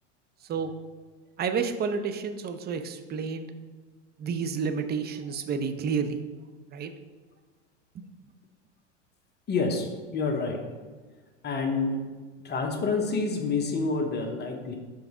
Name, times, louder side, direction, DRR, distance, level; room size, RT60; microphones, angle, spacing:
voice 1, 1.4-3.5 4.2-6.2 6.7-6.9 7.9-8.1, right 5 dB, 25° right, 8 dB, 0.6 m, -30 dB
voice 2, 9.5-10.6 11.4-12.0 12.4-14.8, left 4 dB, 25° left, 3 dB, 1.1 m, -28 dB
6.8 x 4.0 x 4.9 m, 1.4 s
hypercardioid pair, 100°, 37 cm